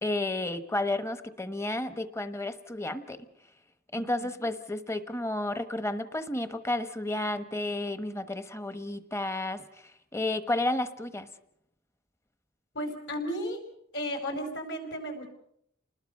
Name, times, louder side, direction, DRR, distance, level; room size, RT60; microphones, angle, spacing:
voice 1, 0.0-3.3 3.9-11.3, left 2 dB, 15° left, 10 dB, 1.1 m, -32 dB
voice 2, 3.9-4.3 12.7-13.6 13.9-15.3, equal, 65° left, 5 dB, 5.0 m, -34 dB
29.5 x 20.5 x 5.4 m, 0.74 s
head